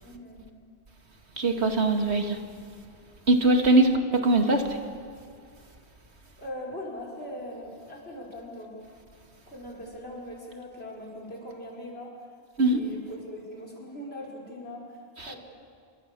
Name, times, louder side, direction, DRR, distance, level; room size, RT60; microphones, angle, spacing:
voice 1, 0.0-0.5 6.4-8.8 9.5-12.1 12.6-15.0 15.2-15.4, left 1 dB, 65° left, -2 dB, 5.8 m, -40 dB
voice 2, 1.4-2.4 3.3-3.9 4.2-4.8 12.6-12.8 15.2-15.3, right 2 dB, 75° right, 4 dB, 2.4 m, -21 dB
27.5 x 24.0 x 6.9 m, 2.2 s
omnidirectional pair, 1.1 m